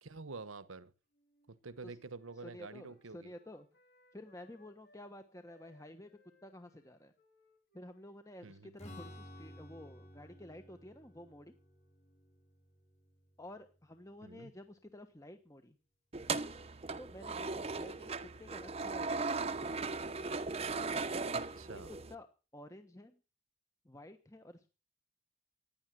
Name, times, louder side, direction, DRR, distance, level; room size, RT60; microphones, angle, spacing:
voice 1, 0.0-0.9 1.5-3.3 8.4-8.7 14.2-14.5 21.6-21.9, right 3 dB, 85° right, 1.2 m, -48 dB
Wind instrument woodwind instrument, 1.1-5.1 5.4-9.9, left 1 dB, 55° left, 6.1 m, -69 dB
voice 2, 2.4-3.7 4.1-6.1 6.4-7.1 7.7-11.5 13.4-15.7 17.0-19.5 21.7-21.8 22.1-22.3 22.5-23.2 23.8-24.7, left 1 dB, 15° left, 1.2 m, -51 dB
Strum, 8.8-14.4, left 1 dB, 35° left, 4.8 m, -55 dB
sound 1, 16.1-22.1, right 4 dB, 30° right, 0.9 m, -38 dB
16.0 x 10.5 x 7.7 m
head